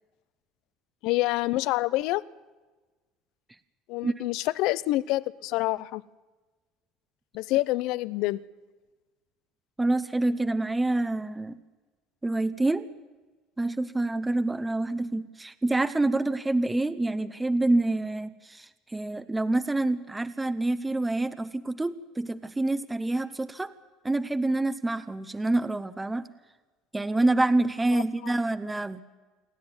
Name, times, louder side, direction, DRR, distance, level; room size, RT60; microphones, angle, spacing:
voice 1, 1.0-2.2 3.9-6.0 7.3-8.4 27.9-28.3, left 18 dB, 70° left, 0.6 m, -27 dB
voice 2, 9.8-11.6 12.2-12.9 13.6-23.7 24.0-26.3 26.9-29.0, right 2 dB, 10° right, 0.8 m, -27 dB
28.0 x 11.5 x 9.7 m
cardioid pair, 120°, 0 cm